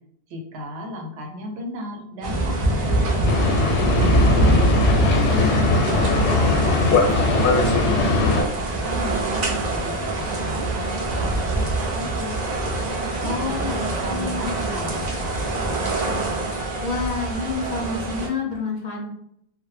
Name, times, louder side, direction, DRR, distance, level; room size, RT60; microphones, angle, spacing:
voice 1, 0.3-3.4 4.0-4.9 5.3-7.5 7.8-12.4 12.8-15.5, right 1 dB, 80° right, 1 dB, 0.9 m, -35 dB
sound 1, 2.2-18.3, right 2 dB, 50° right, 0.6 m, -24 dB
Boat Water vehicle, 3.3-8.4, left 3 dB, 90° left, 0.9 m, -20 dB
voice 2, 4.8-5.5 13.2-14.7 16.4-19.1, left 3 dB, 55° left, -1 dB, 0.6 m, -29 dB
2.1 x 2.0 x 3.1 m, 0.73 s
omnidirectional pair, 1.1 m